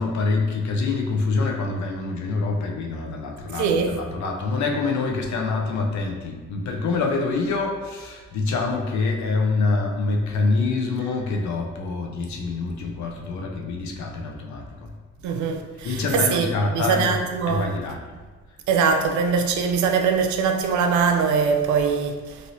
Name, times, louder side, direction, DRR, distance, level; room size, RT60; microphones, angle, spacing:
voice 1, 0.0-14.9 15.8-17.2 17.5-18.0, left 3 dB, 70° left, 0.6 m, -25 dB
voice 2, 3.6-3.9 15.2-16.5 16.7-17.7 18.7-22.4, right 6 dB, 75° right, 0.5 m, -22 dB
3.0 x 2.7 x 2.7 m
cardioid pair, 90°, 30 cm